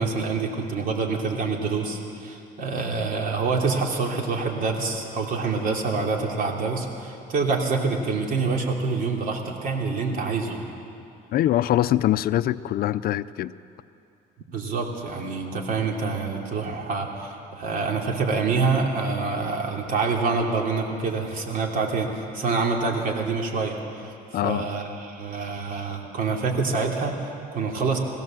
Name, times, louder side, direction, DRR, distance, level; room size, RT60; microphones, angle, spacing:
voice 1, 0.0-10.6 14.5-28.0, right 4 dB, 55° right, 0 dB, 3.0 m, -26 dB
voice 2, 11.3-13.5 24.3-24.7, left 13 dB, 60° left, 15 dB, 0.5 m, -23 dB
21.5 x 16.0 x 7.6 m, 2.6 s
cardioid pair, 110°, 17 cm